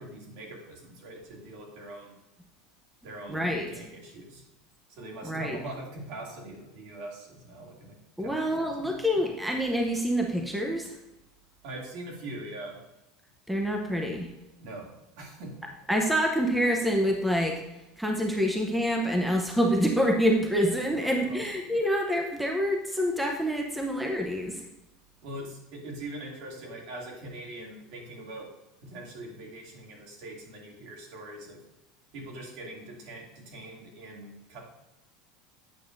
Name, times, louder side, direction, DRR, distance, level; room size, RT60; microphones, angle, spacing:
voice 1, 0.0-2.1 3.0-4.4 4.9-9.0 11.6-12.7 14.6-15.5 20.9-21.4 25.2-28.5 28.8-31.6 32.1-34.6, right 1 dB, 60° right, -1 dB, 2.4 m, -42 dB
voice 2, 3.3-3.7 5.2-5.6 8.2-11.0 13.5-14.3 15.9-17.6 18.0-24.7, equal, 5° right, 1 dB, 0.7 m, -27 dB
8.7 x 6.9 x 2.6 m, 0.95 s
supercardioid pair, 140°, 0 cm